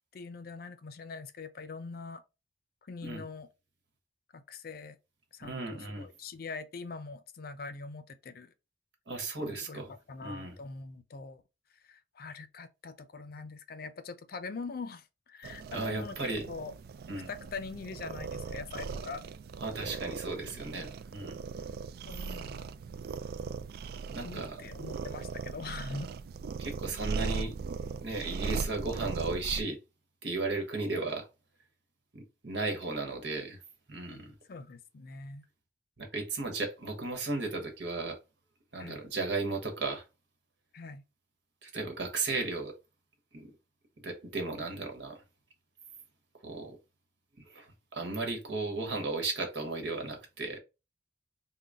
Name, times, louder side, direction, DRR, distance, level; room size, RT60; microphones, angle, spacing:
voice 1, 0.1-2.2 2.9-3.5 4.3-5.0 5.3-8.5 9.4-11.4 11.8-16.7 17.3-19.2 19.8-19.9 22.1-22.7 24.2-26.1 34.5-35.4 38.8-39.0 40.7-41.0, left 4 dB, 55° left, 0.5 m, -43 dB
voice 2, 5.4-6.1 9.1-9.9 10.2-10.6 15.7-16.4 17.1-17.3 19.6-21.4 24.1-24.6 26.6-27.5 28.0-29.8 30.2-31.3 32.1-33.6 33.9-34.3 36.0-38.2 38.7-40.0 41.6-42.7 43.3-43.5 44.0-45.2 46.4-46.8 47.4-50.6, right 3 dB, 90° right, 1.1 m, -35 dB
sound 1, 15.4-29.6, right 5 dB, 60° right, 0.3 m, -39 dB
3.8 x 2.2 x 3.4 m
head